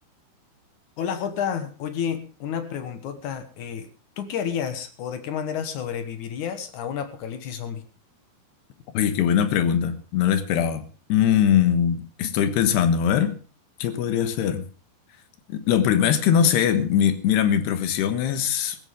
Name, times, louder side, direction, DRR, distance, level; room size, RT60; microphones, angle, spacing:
voice 1, 1.0-3.9 4.2-7.9, left 8 dB, 60° left, 10 dB, 2.2 m, -30 dB
voice 2, 8.9-10.8 11.1-13.4 13.8-14.6 15.5-18.8, left 9 dB, 80° left, 10 dB, 3.4 m, -21 dB
17.0 x 14.5 x 3.6 m, 0.36 s
omnidirectional pair, 4.8 m